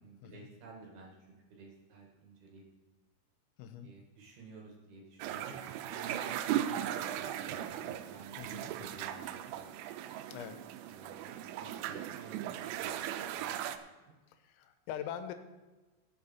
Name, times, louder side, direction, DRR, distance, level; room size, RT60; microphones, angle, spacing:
voice 1, 0.0-2.6 3.8-5.6 5.9-9.8 10.9-14.2, right 4 dB, 60° right, -1 dB, 3.0 m, -52 dB
voice 2, 3.6-3.9 8.4-8.9 10.3-10.6 14.3-15.3, left 9 dB, 90° left, 9 dB, 3.6 m, -43 dB
sound 1, 5.2-13.8, right 11 dB, 85° right, 3.0 m, -38 dB
17.5 x 7.5 x 4.3 m, 1.2 s
omnidirectional pair, 5.8 m